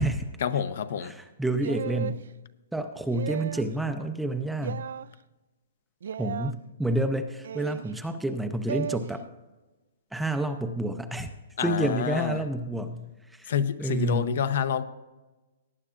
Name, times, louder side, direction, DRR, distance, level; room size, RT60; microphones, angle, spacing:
voice 1, 0.4-1.1 11.6-12.4 13.5-14.8, left 8 dB, 55° left, 0.7 m, -28 dB
voice 2, 1.0-2.2 2.7-4.8 6.2-9.2 10.1-11.3 11.6-13.5 13.8-14.3, right 1 dB, ahead, 0.5 m, -29 dB
sound 1, 1.6-2.2 3.1-3.7 4.6-5.1 6.0-6.5 7.4-7.9 8.7-9.0, right 8 dB, 70° right, 0.3 m, -35 dB
18.0 x 9.8 x 2.5 m
hypercardioid pair, 165°, 0 cm